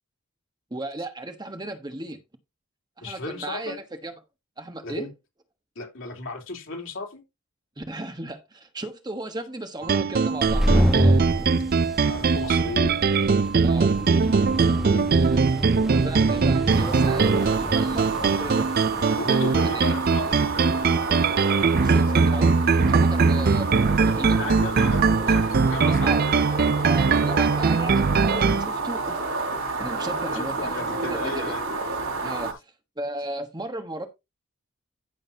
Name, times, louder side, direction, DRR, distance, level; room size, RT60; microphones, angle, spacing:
voice 1, 0.7-2.2 3.0-4.1 4.6-5.1 7.8-11.2 13.6-13.9 15.9-18.7 19.6-19.9 21.8-23.7 24.0-24.6 25.7-26.2 26.8-29.2 29.8-31.5 32.2-32.5 33.0-34.1, right 2 dB, 20° right, 1.2 m, -35 dB
voice 2, 3.0-3.8 4.8-5.1 5.7-7.2 11.9-13.0 14.5-15.1 19.2-20.7 24.4-26.2 30.2-31.6 32.2-32.5, left 3 dB, 65° left, 3.3 m, -35 dB
sound 1, 9.8-28.7, right 4 dB, 45° right, 0.4 m, -21 dB
sound 2, 10.3-20.7, equal, ahead, 1.0 m, -28 dB
sound 3, 16.7-32.5, right 3 dB, 75° right, 5.1 m, -30 dB
15.0 x 6.4 x 2.8 m
head